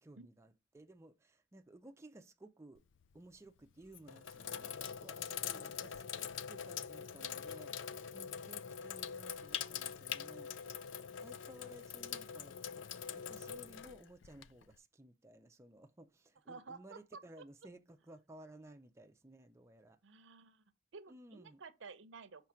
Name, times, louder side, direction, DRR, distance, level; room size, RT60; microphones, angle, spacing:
voice 1, 0.0-2.8 3.1-10.6 11.2-20.0 21.1-21.6, right 1 dB, 15° right, 0.5 m, -57 dB
Sink (filling or washing), 2.8-3.2 3.8-14.7, left 8 dB, 70° left, 0.4 m, -44 dB
voice 2, 16.5-17.0 20.0-20.6 20.9-22.5, right 4 dB, 75° right, 0.7 m, -52 dB
6.3 x 3.2 x 5.6 m
head